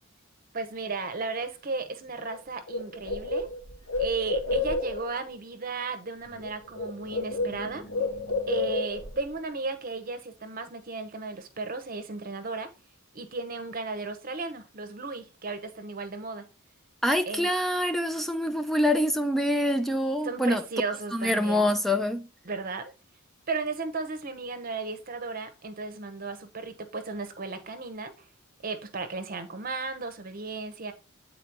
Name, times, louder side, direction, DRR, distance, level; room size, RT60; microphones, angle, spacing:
voice 1, 0.5-3.5 4.0-7.9 8.5-12.7 13.1-16.5 17.3-17.5 20.2-21.7 22.4-22.9 23.5-28.1 28.6-30.9, right 3 dB, 40° right, 0.8 m, -34 dB
Bird, 2.3-2.4 2.7-5.2 6.3-6.5 6.7-9.2, left 3 dB, 80° left, 1.9 m, -30 dB
voice 2, 17.0-20.6 21.1-22.3, left 1 dB, ahead, 0.3 m, -25 dB
8.3 x 4.1 x 2.9 m
head